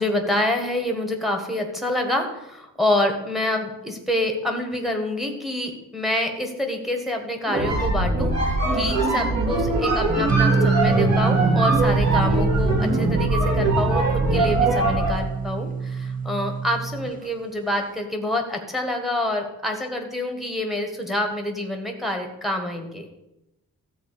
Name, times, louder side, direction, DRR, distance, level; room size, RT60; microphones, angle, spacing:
voice 1, 0.0-23.0, left 1 dB, ahead, 3 dB, 1.5 m, -27 dB
sound 1, 7.4-15.3, right 2 dB, 50° right, 3.2 m, -22 dB
sound 2, 10.3-17.1, right 5 dB, 25° right, 0.6 m, -24 dB
13.5 x 4.5 x 8.4 m, 0.92 s
wide cardioid pair, 165°, 35 cm